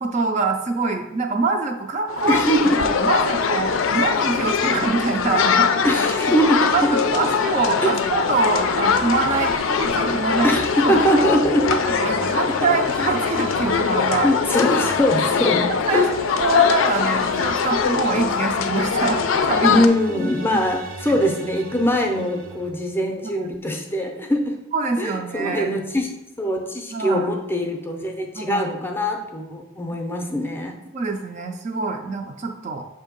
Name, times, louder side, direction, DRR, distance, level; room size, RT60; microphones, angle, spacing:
voice 1, 0.0-2.4 2.7-6.0 6.7-10.6 10.8-11.2 11.7-14.3 15.9-16.1 16.4-19.2 19.5-19.8 22.2-22.3 23.3-23.5 24.7-25.7 26.9-27.3 28.3-28.7 30.9-32.8, right 4 dB, 35° right, 3 dB, 0.4 m, -24 dB
sound 1, 2.1-19.9, left 6 dB, 80° left, 0.4 m, -22 dB
voice 2, 2.3-2.8 5.8-7.1 7.8-7.9 10.4-11.7 14.2-15.6 15.9-16.1 19.6-24.6 25.0-26.1 26.4-30.8, equal, 10° left, 3 dB, 0.6 m, -22 dB
sound 2, 6.0-22.7, equal, 80° right, 0.7 m, -38 dB
6.6 x 2.7 x 5.2 m, 0.97 s
head